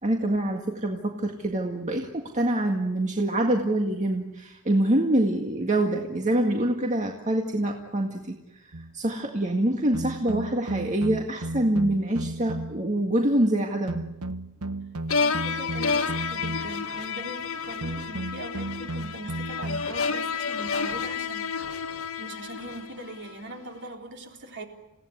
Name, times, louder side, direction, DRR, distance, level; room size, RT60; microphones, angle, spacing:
voice 1, 0.0-8.4 8.6-14.0, right 1 dB, 35° right, 2 dB, 1.9 m, -25 dB
sound 1, 8.7-9.0 9.9-12.9 13.9-16.9 17.8-20.0, right 2 dB, 80° right, 1.0 m, -35 dB
sound 2, 15.1-23.3, left 5 dB, 70° left, 1.9 m, -30 dB
voice 2, 15.2-21.5 22.2-24.7, right 1 dB, 50° right, 2 dB, 3.8 m, -40 dB
29.0 x 17.0 x 9.7 m, 0.92 s
head